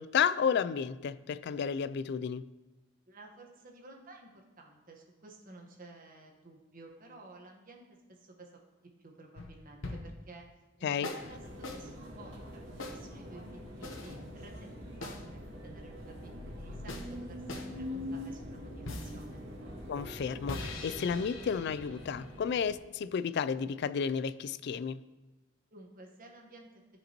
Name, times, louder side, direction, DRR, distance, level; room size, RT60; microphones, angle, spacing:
voice 1, 0.0-2.4 10.8-11.1 19.9-25.0, left 7 dB, 60° left, 15 dB, 0.3 m, -32 dB
voice 2, 3.1-7.8 8.1-8.5 8.8-10.4 10.8-14.7 15.0-19.4 25.7-26.7, right 2 dB, 45° right, 1 dB, 1.3 m, -53 dB
sound 1, 9.3-10.3 11.0-11.3 11.6-11.8 12.8-13.0 13.8-14.2 15.0-15.2 16.9-17.1 17.5-17.7 18.8-19.2 20.5-22.6, left 2 dB, 85° left, 0.9 m, -42 dB
sound 2, 11.2-22.8, left 1 dB, 70° right, 1.9 m, -44 dB
14.0 x 5.1 x 3.0 m, 1.1 s
head